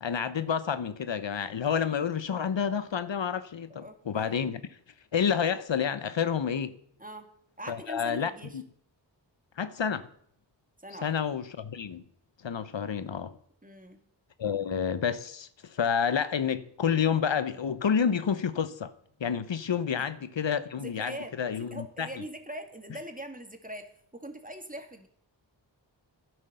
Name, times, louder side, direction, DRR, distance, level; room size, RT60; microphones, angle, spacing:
voice 1, 0.0-4.6 5.1-6.7 7.7-8.6 9.6-10.0 11.0-12.0 12.4-13.3 14.4-18.9 19.2-22.1, left 7 dB, 75° left, 0.8 m, -29 dB
voice 2, 3.8-4.5 7.0-7.3 7.6-8.6 10.8-11.1 13.6-14.0 19.9-20.1 20.8-25.1, right 1 dB, 20° right, 2.2 m, -42 dB
11.0 x 10.5 x 6.8 m
wide cardioid pair, 45°, 45 cm